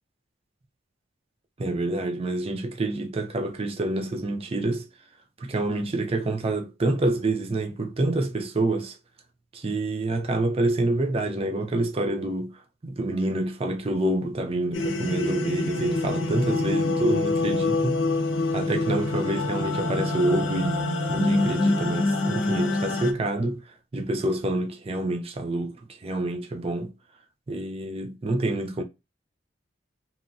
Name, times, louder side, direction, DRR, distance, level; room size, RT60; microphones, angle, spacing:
voice 1, 1.6-4.9 5.4-9.0 9.5-12.5 12.8-18.0 18.5-20.8 21.1-23.6 23.9-26.9 27.5-28.8, right 2 dB, 30° right, 0.4 m, -27 dB
sound 1, 14.7-23.1, left 2 dB, 70° left, 0.5 m, -26 dB
2.9 x 2.7 x 2.3 m
head